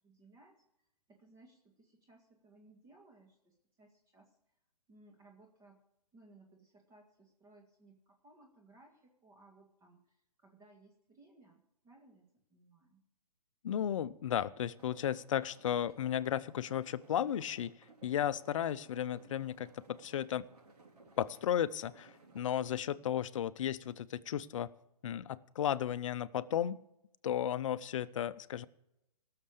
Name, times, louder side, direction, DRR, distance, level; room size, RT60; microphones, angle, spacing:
voice 1, 0.0-4.4 4.9-5.8 6.1-13.0, right 2 dB, 20° right, 0 dB, 1.9 m, -62 dB
voice 2, 13.6-17.7 18.0-20.5 21.2-24.7 25.0-26.8 27.2-28.7, left 10 dB, 55° left, 15 dB, 0.7 m, -34 dB
sound 1, 14.8-22.8, right 3 dB, 80° right, 3.9 m, -60 dB
18.0 x 6.7 x 6.6 m, 0.85 s
hypercardioid pair, 135°, 20 cm